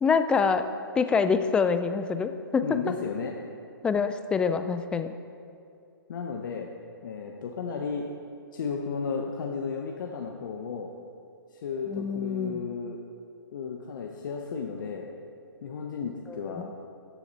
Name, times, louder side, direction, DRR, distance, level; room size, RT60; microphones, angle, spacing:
voice 1, 0.0-0.7 1.0-2.7 3.8-5.2 11.9-12.6 16.3-16.7, left 5 dB, 10° left, 10 dB, 0.3 m, -26 dB
voice 2, 2.6-3.3 6.1-6.7 7.0-8.0 8.5-10.9 11.5-13.0 13.5-15.1 15.6-16.6, left 5 dB, 55° left, 1 dB, 0.9 m, -33 dB
13.0 x 7.0 x 4.1 m, 2.5 s
hypercardioid pair, 135°, 12 cm